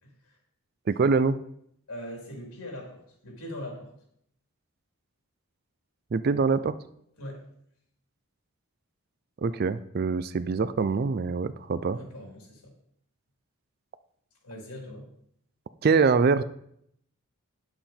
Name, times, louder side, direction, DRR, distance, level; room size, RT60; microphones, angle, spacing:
voice 1, 0.0-0.4 1.9-3.9 7.2-7.4 11.9-12.7 14.4-15.1, left 1 dB, 90° left, 0 dB, 3.2 m, -41 dB
voice 2, 0.9-1.4 6.1-6.8 9.4-12.0 15.8-16.4, right 4 dB, 45° right, 14 dB, 0.4 m, -24 dB
9.2 x 7.8 x 4.3 m, 0.71 s
head